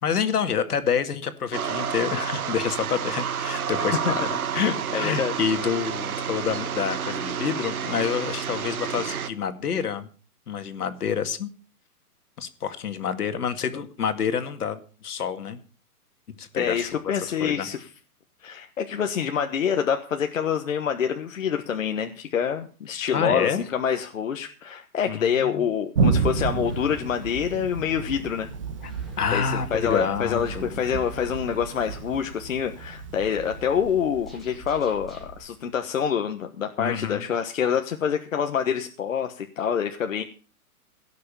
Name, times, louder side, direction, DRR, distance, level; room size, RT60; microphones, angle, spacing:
voice 1, 0.0-4.2 4.5-10.1 10.5-11.5 12.4-15.6 16.4-17.0 17.4-17.7 23.1-23.6 25.1-25.6 28.8-28.9 29.2-30.8 36.8-37.2, left 7 dB, 75° left, 9 dB, 2.2 m, -28 dB
sound 1, 1.5-9.3, right 7 dB, 65° right, 1.4 m, -29 dB
voice 2, 4.9-5.3 16.6-17.9 18.4-28.5 29.3-40.2, left 8 dB, 55° left, 5 dB, 1.3 m, -26 dB
Thunder, 25.9-35.4, right 5 dB, 20° right, 1.0 m, -31 dB
sound 2, 26.6-35.4, equal, ahead, 1.3 m, -47 dB
17.0 x 6.7 x 6.9 m, 0.38 s
hypercardioid pair, 180°, 45 cm